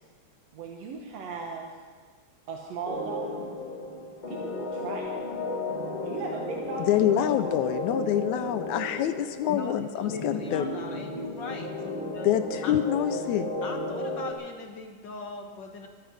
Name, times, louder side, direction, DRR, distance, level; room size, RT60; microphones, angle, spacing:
voice 1, 0.5-1.7 2.5-3.5 4.3-5.3 6.0-6.9 7.2-7.6, right 4 dB, 60° right, -1 dB, 2.2 m, -37 dB
sound 1, 2.9-14.3, left 1 dB, 20° left, 1.3 m, -34 dB
voice 2, 6.9-10.6 12.2-13.5, left 11 dB, 80° left, 10 dB, 1.8 m, -26 dB
voice 3, 9.5-12.3 12.6-12.7 13.6-15.9, left 3 dB, 55° left, 4 dB, 1.4 m, -40 dB
24.0 x 8.1 x 6.3 m, 1.5 s
omnidirectional pair, 3.6 m